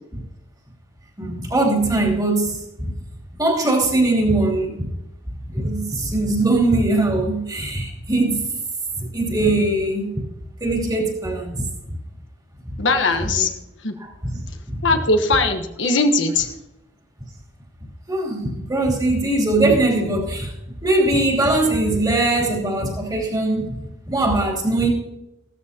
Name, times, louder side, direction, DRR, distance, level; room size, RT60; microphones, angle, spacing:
voice 1, 1.2-2.9 3.4-4.9 5.5-8.5 9.0-10.2 10.6-11.7 13.2-13.5 14.0-14.3 14.7-14.8 18.1-20.5 20.8-23.7 24.1-24.9, right 2 dB, 20° right, -2 dB, 3.0 m, -21 dB
voice 2, 12.8-13.5 13.8-13.9 14.8-16.5, left 3 dB, 85° left, 5 dB, 1.3 m, -19 dB
15.5 x 13.5 x 2.9 m, 0.89 s
head